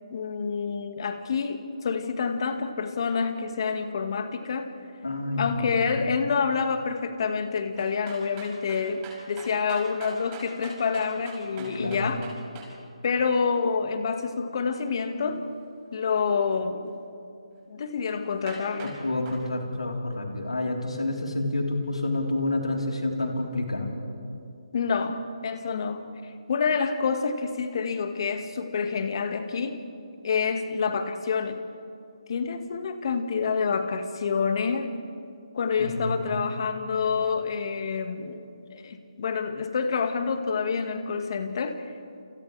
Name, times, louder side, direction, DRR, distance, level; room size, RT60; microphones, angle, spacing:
voice 1, 0.1-4.7 5.4-12.3 13.0-15.4 15.9-17.0 17.7-19.0 24.7-29.8 30.2-31.7 32.3-35.0 35.5-41.9, left 5 dB, 50° left, 7 dB, 1.9 m, -28 dB
voice 2, 5.0-6.0 11.6-12.1 19.0-23.9 35.8-36.4, left 2 dB, 85° left, 0 dB, 3.9 m, -29 dB
sound 1, 7.8-12.7 18.1-18.2 18.5-19.0 19.2-19.4, right 4 dB, 25° right, 5.9 m, -43 dB
29.5 x 28.5 x 3.4 m, 2.5 s
figure-of-eight pair, 150°, 3 cm